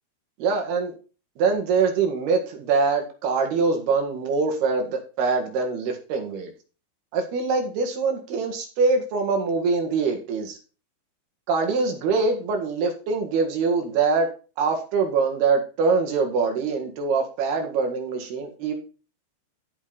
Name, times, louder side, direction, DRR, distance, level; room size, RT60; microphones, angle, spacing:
voice 1, 0.4-0.9 1.4-6.5 7.1-10.6 11.5-14.3 14.6-18.8, right 4 dB, 70° right, 3 dB, 3.8 m, -24 dB
15.0 x 5.3 x 4.0 m, 0.35 s
omnidirectional pair, 4.9 m